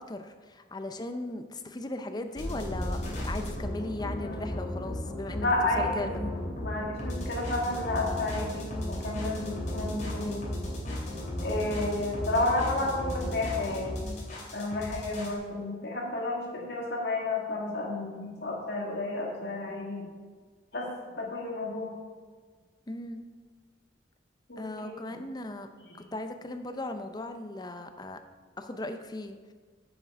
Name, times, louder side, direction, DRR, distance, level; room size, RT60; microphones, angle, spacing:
voice 1, 0.1-5.5 5.8-6.1 22.9-23.3 24.6-25.7 26.1-28.2 28.6-29.4, left 2 dB, 20° left, 7 dB, 0.6 m, -37 dB
sound 1, 2.4-15.4, left 1 dB, 40° left, 2.7 m, -35 dB
voice 2, 4.1-4.4 5.3-6.3 6.6-10.5 11.4-14.2 14.5-20.0 20.7-20.9 21.2-21.9 24.5-25.2, left 2 dB, 60° left, -2 dB, 2.2 m, -31 dB
7.5 x 6.8 x 5.0 m, 1.5 s
head